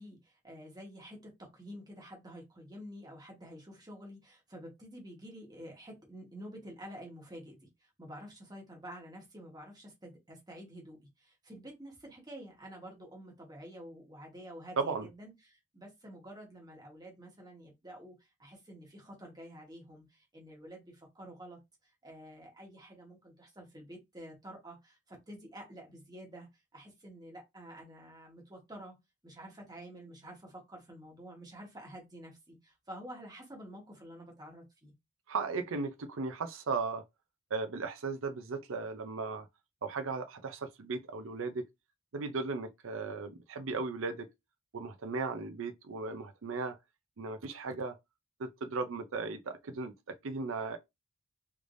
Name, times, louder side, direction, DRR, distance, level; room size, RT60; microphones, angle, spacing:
voice 1, 0.0-29.0 29.2-34.9, equal, 20° right, 1.2 m, -49 dB
voice 2, 14.8-15.1 35.3-37.0 37.5-39.5 39.8-41.7 42.1-44.3 44.7-46.8 47.2-48.0 48.4-50.8, right 4 dB, 65° right, 0.5 m, -36 dB
3.3 x 3.2 x 2.5 m
head